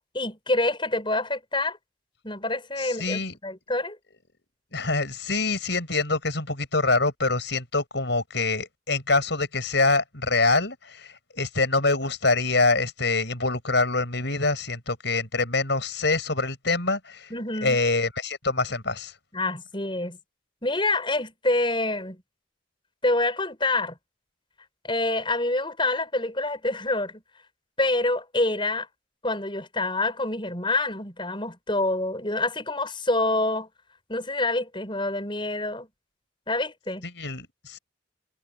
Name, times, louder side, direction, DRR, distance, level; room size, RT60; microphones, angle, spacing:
voice 1, 0.0-1.8 2.2-4.0 17.3-17.8 19.3-20.2 20.6-22.2 23.0-24.0 24.8-27.2 27.8-28.9 29.2-33.7 34.1-35.9 36.5-37.0, left 2 dB, 25° left, 7.0 m, -27 dB
voice 2, 2.8-3.3 4.7-17.3 17.6-19.2 37.0-37.8, left 3 dB, 60° left, 6.5 m, -25 dB
head